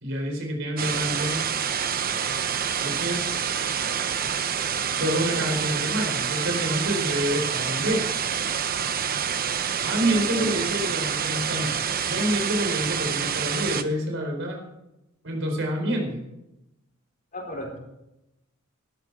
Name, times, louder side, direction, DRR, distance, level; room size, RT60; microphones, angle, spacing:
voice 1, 0.0-1.4 2.8-3.4 4.9-8.1 9.8-11.8 12.1-14.6 15.2-16.2, equal, 65° right, 2 dB, 4.6 m, -27 dB
sound 1, 0.8-13.8, right 8 dB, 45° right, 0.9 m, -27 dB
voice 2, 10.0-10.5 17.3-17.8, left 1 dB, 40° left, 0 dB, 4.4 m, -35 dB
19.0 x 13.0 x 4.8 m, 0.91 s
head